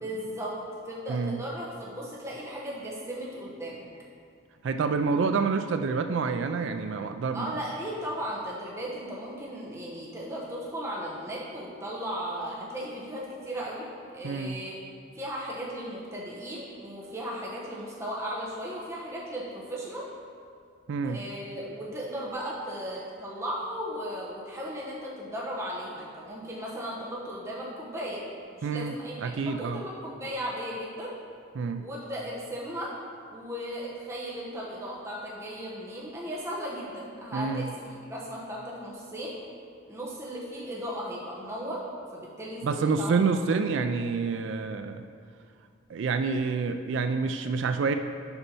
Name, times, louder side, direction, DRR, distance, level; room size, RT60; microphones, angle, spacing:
voice 1, 0.0-0.6 0.8-3.9 7.3-13.9 14.1-14.7 15.1-20.1 21.0-28.2 28.5-31.1 31.8-32.9 33.3-39.3 39.9-41.8 42.1-43.1, equal, 15° right, -6 dB, 1.0 m, -36 dB
voice 2, 4.6-7.5 14.2-14.6 20.9-21.2 28.6-29.8 31.6-31.8 37.3-37.7 42.6-45.0 45.9-47.9, right 4 dB, 65° right, 8 dB, 0.3 m, -28 dB
7.1 x 5.4 x 5.3 m, 2.3 s
head